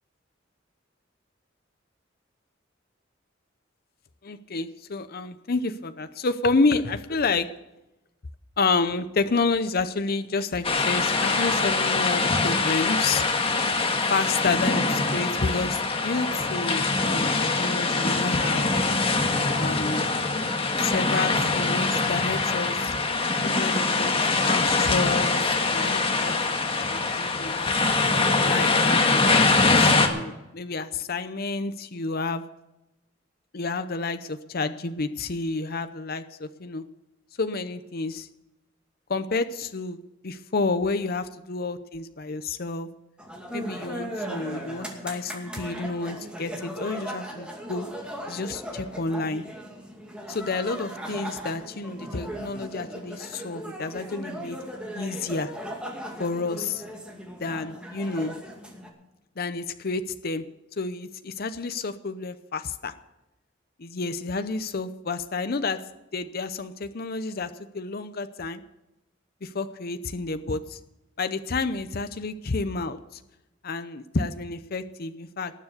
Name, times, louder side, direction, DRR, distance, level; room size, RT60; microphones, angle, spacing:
voice 1, 4.2-7.5 8.6-13.2 14.1-18.7 19.5-20.1 20.8-23.0 23.4-27.7 28.4-32.4 33.5-36.8 37.4-38.3 39.1-42.9 43.5-47.9 48.3-49.4 50.3-54.6 54.9-55.5 56.2-56.8 57.4-58.4 59.4-60.4 60.8-62.9 63.8-65.8 66.1-68.6 69.4-70.8 71.2-73.0 73.6-75.5, left 3 dB, 55° left, 10 dB, 0.7 m, -30 dB
sound 1, 10.6-30.1, left 3 dB, 30° left, 1.6 m, -23 dB
sound 2, 43.2-58.9, equal, 5° right, 2.4 m, -38 dB
19.0 x 7.3 x 6.6 m, 0.94 s
head